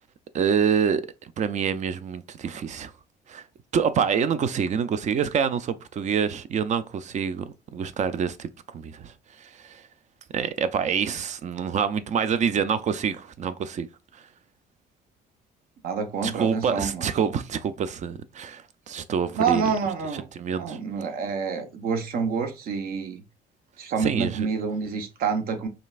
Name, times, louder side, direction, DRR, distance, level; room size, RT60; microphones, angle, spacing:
voice 1, 0.3-2.9 3.3-3.4 3.7-8.5 8.7-9.8 10.3-13.9 16.2-19.6 20.4-20.8 24.0-24.5, right 7 dB, 45° right, 0.5 m, -26 dB
voice 2, 15.8-17.1 19.3-23.2 23.8-25.7, right 5 dB, 60° right, 1.0 m, -28 dB
5.2 x 3.3 x 2.5 m
cardioid pair, 110°, 17 cm